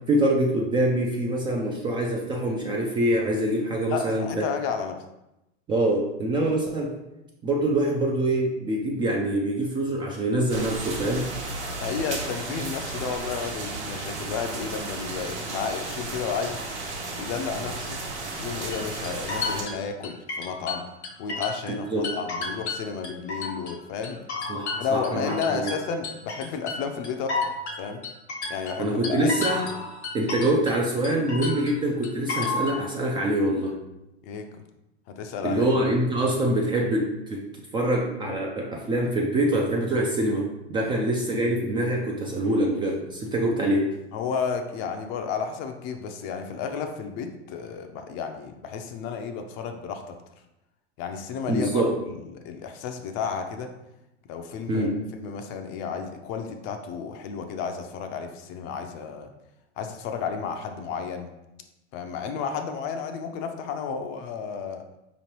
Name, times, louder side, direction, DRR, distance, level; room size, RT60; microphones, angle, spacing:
voice 1, 0.1-4.4 5.7-6.9 7.4-11.3 21.7-22.1 24.5-25.7 28.8-29.6 30.1-33.8 35.4-37.4 37.7-43.9 51.5-51.9 54.7-55.0, right 1 dB, 15° right, -1 dB, 0.3 m, -25 dB
voice 2, 3.9-5.0 11.8-16.8 17.2-18.0 18.4-20.8 21.2-24.2 24.8-27.5 27.8-28.0 28.5-29.3 34.2-34.5 35.2-35.6 40.8-40.9 44.1-50.1 51.0-53.7 54.3-54.9 55.2-59.3 59.8-61.3 61.9-64.8, left 6 dB, 40° left, 6 dB, 0.5 m, -32 dB
sound 1, 10.5-19.6, right 3 dB, 85° right, 1.1 m, -34 dB
sound 2, 18.7-21.8 22.0-23.7 24.0-30.8 31.0-32.8, left 3 dB, 80° left, 1.1 m, -32 dB
4.9 x 3.0 x 3.1 m, 0.91 s
hypercardioid pair, 105°, 34 cm